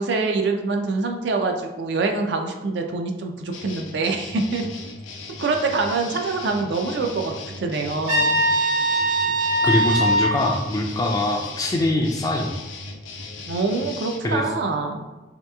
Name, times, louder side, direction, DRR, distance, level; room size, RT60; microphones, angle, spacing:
voice 1, 0.0-4.7 5.4-8.4 13.5-15.1, right 3 dB, 60° right, 4 dB, 0.4 m, -25 dB
sound 1, 3.5-14.2, left 3 dB, 85° left, 0.5 m, -37 dB
Trumpet, 8.1-10.4, right 1 dB, 80° right, 1.1 m, -20 dB
voice 2, 9.6-12.5 14.2-14.5, left 1 dB, 20° left, 1 dB, 0.3 m, -23 dB
3.2 x 2.9 x 2.2 m, 1.1 s
head